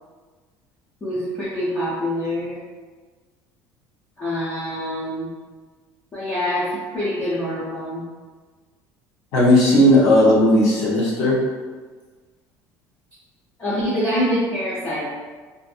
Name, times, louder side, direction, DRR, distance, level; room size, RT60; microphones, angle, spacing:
voice 1, 1.0-2.6 4.2-5.3 6.1-8.0 13.6-15.1, equal, 20° left, -10 dB, 0.5 m, -25 dB
voice 2, 9.3-11.4, left 1 dB, 60° left, -5 dB, 0.9 m, -15 dB
2.5 x 2.5 x 2.4 m, 1.4 s
cardioid pair, 165°, 7 cm